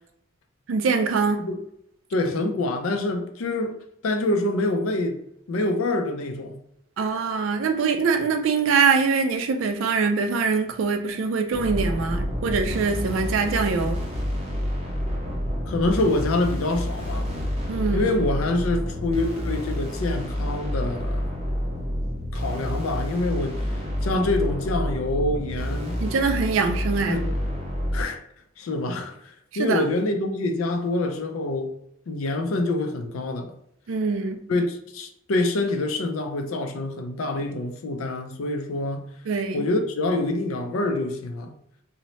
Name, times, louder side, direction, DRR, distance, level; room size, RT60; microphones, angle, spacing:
voice 1, 0.7-1.5 7.0-14.0 17.7-18.1 26.0-27.2 29.5-29.8 33.9-34.4 39.3-39.7, right 5 dB, 70° right, 0.4 m, -23 dB
voice 2, 2.1-3.8 4.0-5.2 5.5-6.6 15.7-17.4 17.9-21.3 22.3-23.7 24.0-26.0 27.1-27.4 27.9-28.2 28.6-29.1 29.6-31.7 32.1-33.5 34.5-39.1 39.5-41.5, left 2 dB, 80° left, 0.4 m, -26 dB
sound 1, 11.5-28.0, equal, 30° right, 0.7 m, -28 dB
2.7 x 2.0 x 3.0 m
head